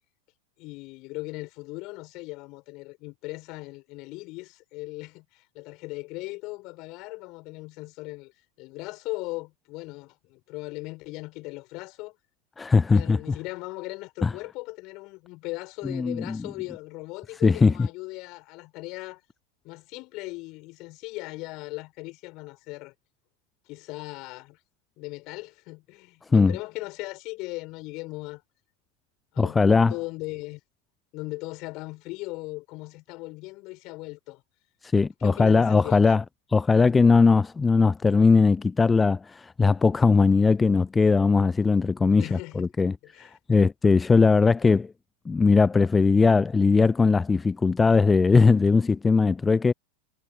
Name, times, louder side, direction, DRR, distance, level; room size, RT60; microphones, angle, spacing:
voice 1, 0.6-8.3 8.6-12.1 12.9-19.2 19.6-22.9 23.7-24.6 25.0-28.4 29.3-30.6 31.1-34.4 35.2-36.2 42.2-42.7 43.0-43.4, left 23 dB, 40° left, 6.7 m, -38 dB
voice 2, 12.6-13.2 14.2-14.3 15.9-16.4 17.4-17.7 26.3-26.5 29.4-29.9 34.8-36.2 36.5-44.9 45.3-49.7, left 4 dB, 15° left, 0.5 m, -20 dB
figure-of-eight pair, 90°, 0 cm